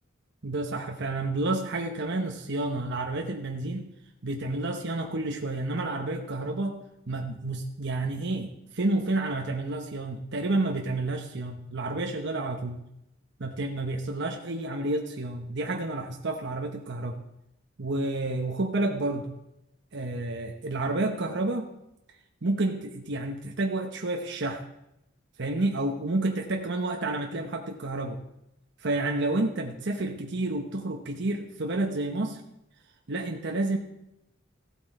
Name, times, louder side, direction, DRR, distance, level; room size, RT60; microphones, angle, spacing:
voice 1, 0.4-3.9 4.2-12.8 13.4-17.2 17.8-19.3 19.9-21.7 22.4-24.6 25.4-28.2 28.8-32.4 33.1-33.8, right 2 dB, 60° right, 2 dB, 1.0 m, -30 dB
15.0 x 8.5 x 4.3 m, 0.84 s
head